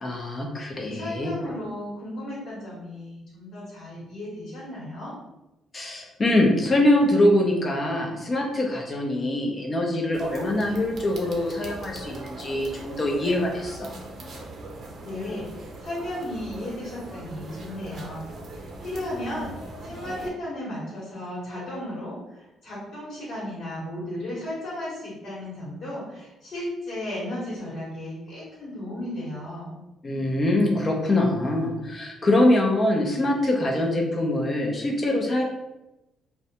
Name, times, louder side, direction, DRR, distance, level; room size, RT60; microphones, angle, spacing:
voice 1, 0.0-1.3 5.7-14.0 30.0-35.4, left 1 dB, 35° left, 1 dB, 0.6 m, -23 dB
voice 2, 0.8-5.1 15.0-15.5 15.8-29.8, left 1 dB, 65° left, -7 dB, 1.1 m, -35 dB
sound 1, 10.1-20.3, right 2 dB, 55° right, 0.5 m, -40 dB
2.4 x 2.1 x 2.8 m, 0.95 s
cardioid pair, 80°, 0 cm